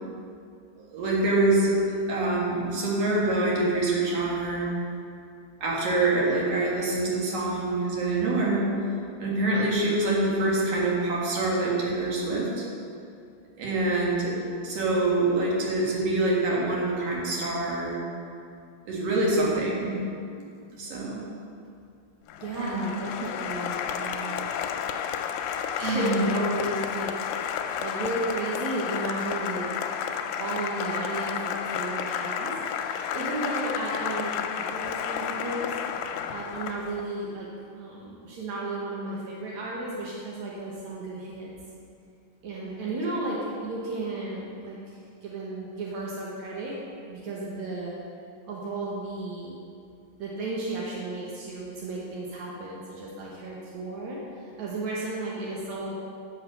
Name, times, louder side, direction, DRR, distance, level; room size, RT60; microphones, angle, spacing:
voice 1, 0.8-4.7 5.6-8.7 9.2-12.7 13.6-18.0 18.8-20.0 20.3-20.4 20.7-21.2 22.6-22.9 25.8-26.2, right 2 dB, 50° right, -4 dB, 2.0 m, -25 dB
Applause, 22.3-37.1, left 8 dB, 80° left, 2.5 m, -31 dB
voice 2, 22.4-24.5 25.8-27.1 27.6-29.9 30.4-35.7 36.3-41.5 42.4-46.7 47.1-48.0 48.4-49.6 50.2-55.9, right 2 dB, 80° right, -5 dB, 1.7 m, -34 dB
11.0 x 5.8 x 6.6 m, 2.4 s
omnidirectional pair, 5.3 m